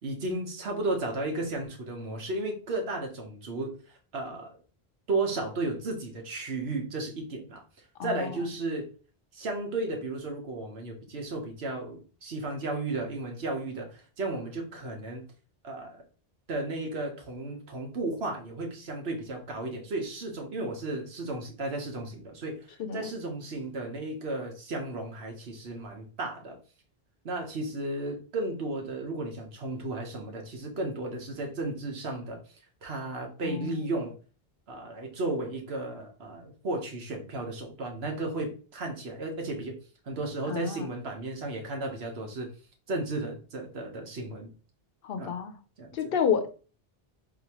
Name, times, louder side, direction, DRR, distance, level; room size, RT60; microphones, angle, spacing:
voice 1, 0.0-3.8 4.1-4.6 5.1-7.6 8.0-8.9 9.3-15.2 15.6-16.0 16.5-26.6 27.2-32.4 32.8-34.1 34.7-39.8 40.1-42.5 42.9-44.5 45.2-45.3 45.8-46.1, right 2 dB, 85° right, 1.3 m, -34 dB
voice 2, 8.0-8.4 22.8-23.1 33.4-33.9 40.5-40.9 45.0-45.6 45.9-46.5, left 7 dB, 70° left, 0.7 m, -30 dB
4.1 x 2.8 x 2.9 m
omnidirectional pair, 1.0 m